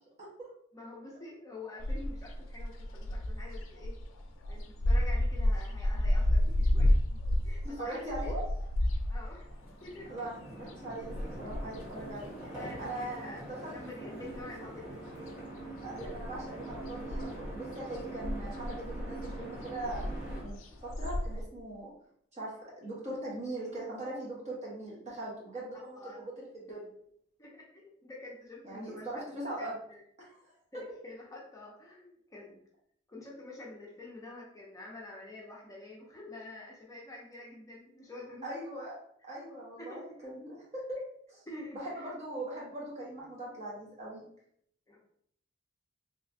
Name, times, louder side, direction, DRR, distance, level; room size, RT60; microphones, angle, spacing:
voice 1, 0.2-0.5 7.6-8.4 10.1-12.4 12.8-13.7 15.8-20.0 20.4-20.6 20.8-21.9 22.3-22.5 22.8-26.8 28.6-29.8 30.2-30.5 38.4-38.9 39.2-41.0 41.3-41.4 41.7-44.2, right 1 dB, 35° right, -5 dB, 1.3 m, -40 dB
voice 2, 0.7-3.9 4.5-8.1 9.1-9.5 9.8-10.1 12.4-15.0 16.0-16.1 25.9-26.2 27.4-29.3 29.6-30.0 30.7-32.6 33.1-38.6 39.8-40.0 41.5-42.1 44.9-45.0, left 2 dB, 15° left, -4 dB, 0.6 m, -47 dB
sound 1, 1.8-13.4 13.7-15.0 15.3-21.4, left 1 dB, 80° left, 0.4 m, -31 dB
sound 2, 9.4-20.4, right 2 dB, 15° right, 1.2 m, -44 dB
3.2 x 2.9 x 2.7 m, 0.69 s
head